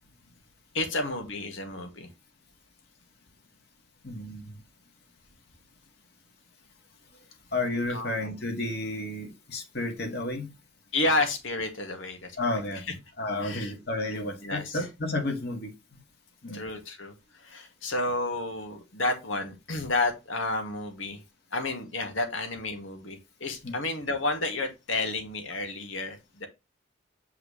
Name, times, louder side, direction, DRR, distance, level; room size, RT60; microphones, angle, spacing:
voice 1, 0.7-2.1 7.9-8.3 10.9-12.6 13.4-13.7 14.4-14.8 16.5-21.2 21.5-26.5, left 2 dB, 85° left, 2.0 m, -31 dB
voice 2, 4.0-4.6 7.5-10.5 12.4-12.8 13.2-15.7 16.4-16.6 23.6-23.7, left 2 dB, 55° left, 2.0 m, -31 dB
8.3 x 4.7 x 3.2 m
head